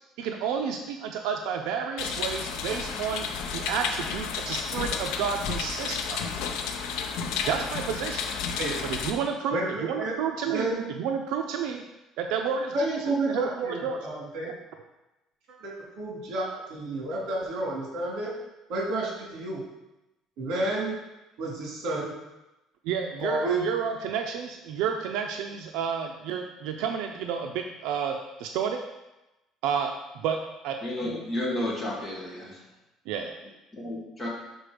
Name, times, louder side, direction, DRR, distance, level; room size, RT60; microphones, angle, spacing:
voice 1, 0.2-6.3 7.4-8.3 8.8-10.7 11.0-11.8 12.2-14.0 14.4-14.5 22.8-28.8 29.6-29.9 30.1-30.4 30.6-30.7 33.1-33.3, right 7 dB, 80° right, 4 dB, 0.5 m, -31 dB
sound 1, 2.0-9.1, left 6 dB, 75° left, 0.6 m, -32 dB
voice 2, 9.5-10.1 10.5-10.8 12.7-14.5 15.5-18.3 18.7-19.6 20.4-20.9 21.4-22.1 23.2-23.6, right 2 dB, 60° right, -3 dB, 2.5 m, -30 dB
voice 3, 30.8-32.6 33.7-34.3, left 1 dB, 15° left, -5 dB, 1.7 m, -32 dB
6.2 x 4.1 x 5.1 m, 0.98 s
cardioid pair, 170°, 0 cm